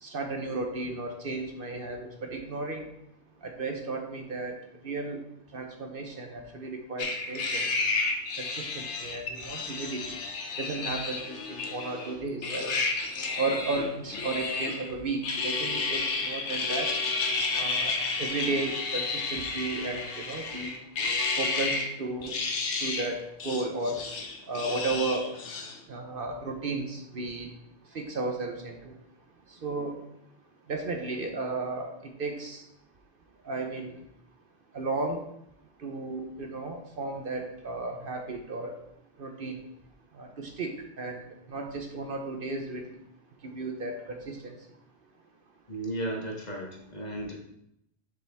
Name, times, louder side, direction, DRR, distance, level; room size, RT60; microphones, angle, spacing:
voice 1, 0.0-2.9 3.4-4.5 4.8-5.2 5.5-7.6 8.4-10.2 10.6-12.8 13.4-16.9 17.5-20.8 21.4-22.4 22.8-24.0 24.5-25.3 25.9-27.5 27.9-28.9 29.6-30.0 30.7-32.6 33.4-34.0 34.7-35.3 35.8-38.7 39.2-39.6 40.1-42.9 43.4-44.5, right 3 dB, 55° right, 4 dB, 1.0 m, -34 dB
sound 1, 7.0-12.1 12.4-14.9 15.2-21.9 22.2-23.1 23.4-25.8, left 3 dB, 85° left, 1.2 m, -31 dB
voice 2, 45.7-47.3, right 1 dB, 40° left, -1 dB, 1.4 m, -34 dB
7.6 x 5.3 x 3.5 m, 0.78 s
omnidirectional pair, 1.1 m